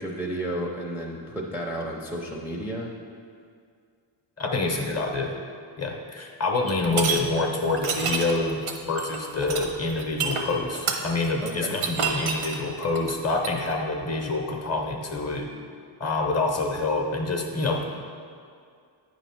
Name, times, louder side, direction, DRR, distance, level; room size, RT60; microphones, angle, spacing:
voice 1, 0.0-2.9 11.4-11.8, right 1 dB, 5° right, -2 dB, 0.4 m, -32 dB
voice 2, 4.4-5.4 5.8-15.5 16.0-17.8, left 3 dB, 35° left, 2 dB, 0.7 m, -27 dB
sound 1, 6.7-7.2 7.7-13.6, right 6 dB, 90° right, 0.8 m, -28 dB
9.0 x 3.1 x 5.7 m, 2.2 s
wide cardioid pair, 160°, 47 cm